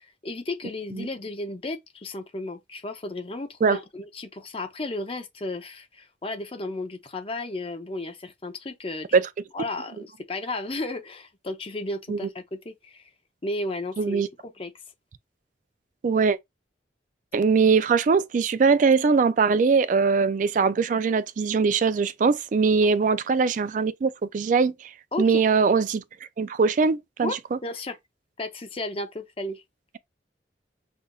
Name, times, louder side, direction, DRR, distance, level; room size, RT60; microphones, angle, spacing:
voice 1, 0.0-9.1 9.5-13.0 13.4-14.7 25.1-25.4 27.2-27.4 27.6-27.9 28.4-29.6, left 2 dB, 30° left, 0.6 m, -34 dB
voice 2, 14.0-14.3 16.0-16.4 17.3-24.7 25.2-26.0 26.4-27.6, right 5 dB, 45° right, 0.3 m, -21 dB
5.5 x 2.4 x 2.3 m
head